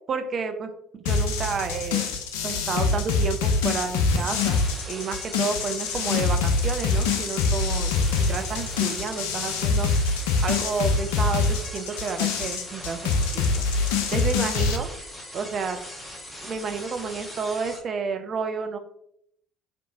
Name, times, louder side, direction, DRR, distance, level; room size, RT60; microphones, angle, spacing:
voice 1, 0.1-0.7 1.0-2.1 2.4-4.6 4.9-13.6 13.9-14.9 15.3-15.8 16.4-18.8, right 5 dB, 45° right, 7 dB, 0.4 m, -31 dB
sound 1, 1.1-14.8, left 4 dB, 70° left, 0.3 m, -25 dB
sound 2, 4.1-17.8, left 1 dB, 10° left, 1.0 m, -40 dB
3.4 x 2.6 x 2.7 m, 0.72 s
figure-of-eight pair, 55°, 0 cm